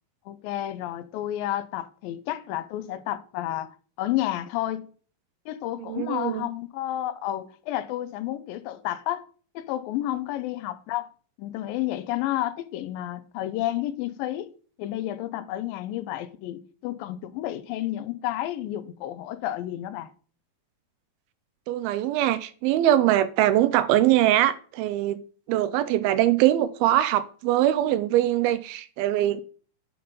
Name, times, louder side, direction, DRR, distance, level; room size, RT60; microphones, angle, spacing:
voice 1, 0.3-4.9 5.5-9.3 9.6-11.1 11.4-14.5 14.8-20.1, left 13 dB, 80° left, 2.2 m, -31 dB
voice 2, 5.8-6.5 21.7-25.2 25.5-29.4, right 13 dB, 85° right, 2.4 m, -22 dB
7.9 x 5.6 x 5.1 m
omnidirectional pair, 4.3 m